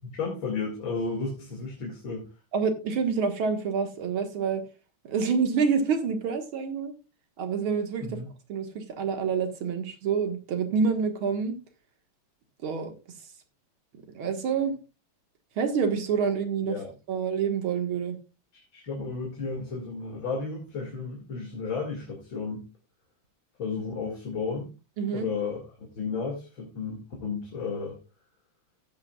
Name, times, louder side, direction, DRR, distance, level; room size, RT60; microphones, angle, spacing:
voice 1, 0.2-2.3 8.0-8.3 16.6-16.9 18.5-22.7 23.6-24.7 25.1-25.6 26.0-28.0, left 4 dB, 70° left, 3.0 m, -33 dB
voice 2, 2.5-4.6 5.0-6.9 7.4-8.2 8.5-11.6 12.6-12.9 14.1-14.7 15.6-16.8 17.1-18.2 25.0-25.3, right 6 dB, 80° right, 2.4 m, -27 dB
15.0 x 8.7 x 2.3 m
omnidirectional pair, 2.3 m